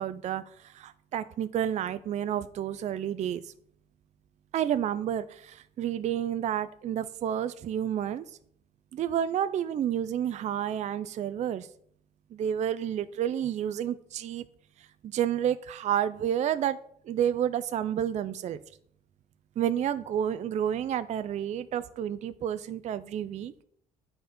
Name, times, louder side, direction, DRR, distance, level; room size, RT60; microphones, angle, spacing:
voice 1, 0.0-3.5 4.5-8.2 8.9-11.7 12.3-14.5 14.8-16.8 17.0-18.6 19.6-23.5, right 10 dB, 45° right, 13 dB, 0.4 m, -30 dB
8.8 x 4.3 x 5.2 m, 0.64 s
cardioid pair, 110°, 17 cm